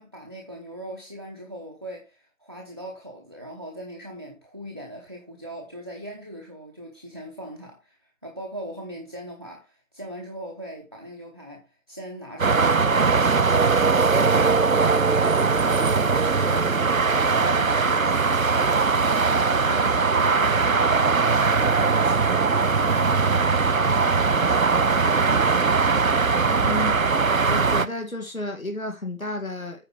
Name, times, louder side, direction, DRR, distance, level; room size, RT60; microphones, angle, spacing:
voice 1, 0.0-25.4, equal, 20° right, 0.9 m, -40 dB
sound 1, 12.4-27.9, right 4 dB, 85° right, 0.8 m, -20 dB
voice 2, 26.6-27.0 27.4-29.9, left 1 dB, 90° left, 2.1 m, -31 dB
8.9 x 4.6 x 6.1 m
figure-of-eight pair, 160°, 40 cm